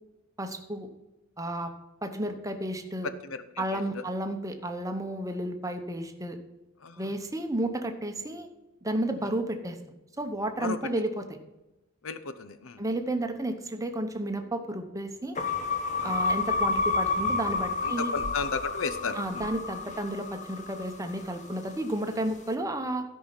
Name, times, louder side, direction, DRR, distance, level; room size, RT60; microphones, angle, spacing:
voice 1, 0.4-0.9 1.4-1.7 2.0-3.1 3.6-6.4 7.0-8.5 8.8-9.8 10.2-11.2 12.8-15.4 16.0-18.1 19.2-23.0, right 1 dB, 15° right, 6 dB, 0.9 m, -32 dB
voice 2, 3.0-4.0 6.8-7.1 9.2-9.3 10.6-10.8 12.0-12.8 16.0-16.2 17.8-19.5, left 4 dB, 80° left, 12 dB, 0.8 m, -34 dB
sound 1, 15.4-21.7, left 3 dB, 35° left, 1.1 m, -30 dB
13.0 x 5.6 x 5.7 m, 1.0 s
head